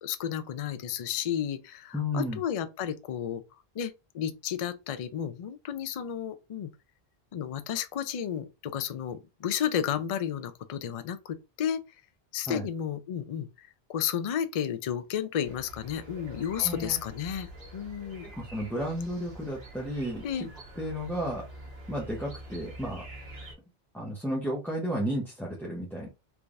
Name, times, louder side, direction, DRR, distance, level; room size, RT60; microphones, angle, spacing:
voice 1, 0.0-3.4 3.7-6.7 7.3-11.8 12.3-18.3 20.2-20.5, left 9 dB, 55° left, 0.4 m, -32 dB
voice 2, 1.9-2.4 12.5-12.7 16.6-17.0 18.2-20.5 20.8-21.4 21.9-23.0 23.9-26.1, equal, ahead, 0.8 m, -33 dB
sound 1, 15.4-23.5, right 1 dB, 70° right, 1.4 m, -46 dB
3.5 x 3.2 x 2.5 m
omnidirectional pair, 1.1 m